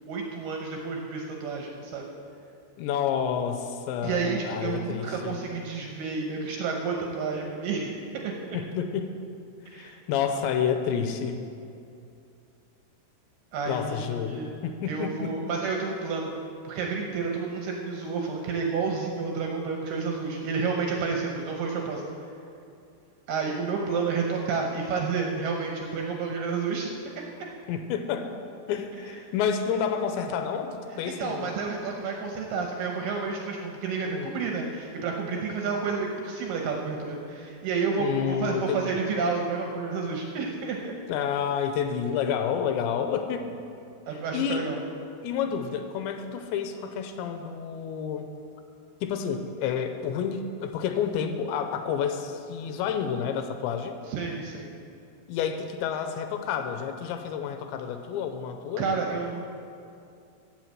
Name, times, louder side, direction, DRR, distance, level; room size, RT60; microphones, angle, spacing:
voice 1, 0.1-2.1 4.0-7.9 8.2-8.6 9.7-10.0 13.5-14.5 14.9-16.4 16.6-22.0 23.3-26.9 31.0-40.9 44.1-44.8 54.1-54.7 58.8-59.4, right 4 dB, 75° right, 1 dB, 2.5 m, -30 dB
voice 2, 2.8-5.4 8.5-9.2 9.7-11.4 13.7-15.3 27.7-28.3 28.7-31.6 34.0-34.3 38.0-39.0 41.1-43.5 44.3-44.8 45.2-48.3 49.0-54.0 55.3-58.8, left 7 dB, 80° left, 6 dB, 2.8 m, -29 dB
16.0 x 5.8 x 7.5 m, 2.5 s
omnidirectional pair, 5.4 m